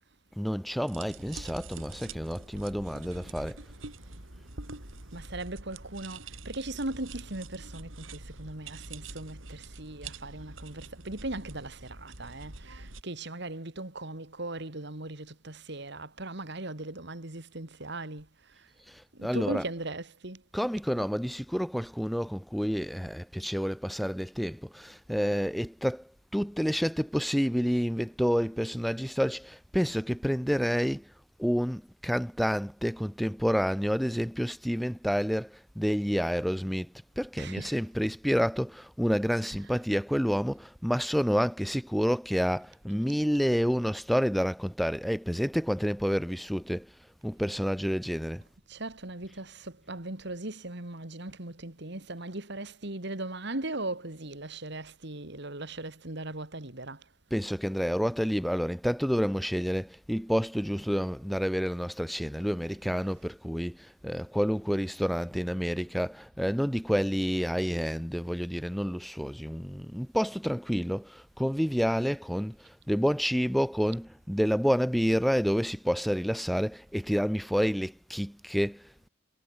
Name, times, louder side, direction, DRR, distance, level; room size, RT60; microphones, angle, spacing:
voice 1, 0.4-3.6 18.9-19.6 20.5-31.1 31.4-46.9 47.2-48.4 57.3-79.1, equal, ahead, 1.3 m, -29 dB
sound 1, 0.9-13.0, right 3 dB, 75° right, 4.3 m, -45 dB
voice 2, 5.1-18.3 18.6-18.7 19.1-20.4 37.4-37.8 48.7-57.0, right 2 dB, 60° right, 2.7 m, -38 dB
head